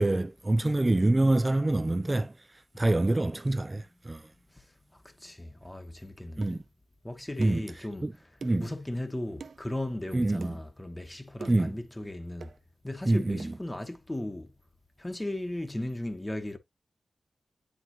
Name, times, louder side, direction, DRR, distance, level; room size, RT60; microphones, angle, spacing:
voice 1, 0.0-2.3 2.8-4.3 6.4-6.6 7.4-7.6 8.0-8.1 8.4-8.7 10.1-10.6 11.5-11.7 13.1-13.5, right 2 dB, 20° right, 0.3 m, -26 dB
voice 2, 4.5-6.6 7.0-12.5 12.8-14.5 15.0-16.6, left 1 dB, 15° left, 1.0 m, -37 dB
sound 1, 6.4-6.6 7.4-7.7 8.4-8.7 9.4-9.6 10.4-10.6 11.4-11.7 12.4-12.6 13.4-13.5, right 5 dB, 85° right, 0.6 m, -44 dB
9.5 x 3.8 x 2.7 m
wide cardioid pair, 125°, 0 cm